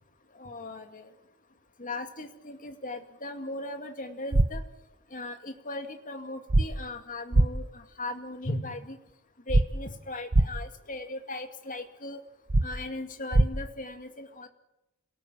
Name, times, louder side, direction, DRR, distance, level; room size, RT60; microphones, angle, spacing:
voice 1, 0.4-1.1 1.8-4.6 5.1-9.0 9.5-12.2 12.6-14.5, left 2 dB, 40° left, 6 dB, 2.3 m, -38 dB
sound 1, 4.3-4.5 6.5-6.6 7.3-7.5 9.5-9.6 10.3-10.5 12.5-12.6 13.3-13.5, right 2 dB, 55° right, 0.9 m, -19 dB
26.0 x 18.0 x 9.2 m, 0.94 s
head